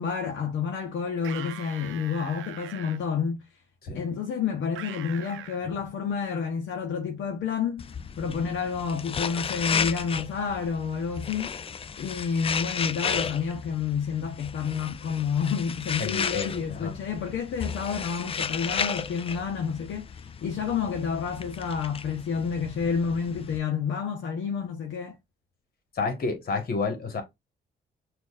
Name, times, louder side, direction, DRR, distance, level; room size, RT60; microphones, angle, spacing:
voice 1, 0.0-3.4 3.9-7.9 8.2-11.5 12.0-25.2, left 6 dB, 70° left, 0.9 m, -29 dB
sound 1, 1.2-3.0 4.8-5.6, right 11 dB, 80° right, 0.6 m, -41 dB
sound 2, 7.8-23.6, left 6 dB, 30° left, 0.4 m, -34 dB
voice 2, 16.0-17.0 25.9-27.2, left 4 dB, 50° left, 1.5 m, -30 dB
6.2 x 2.6 x 2.5 m
cardioid pair, 90°, 20 cm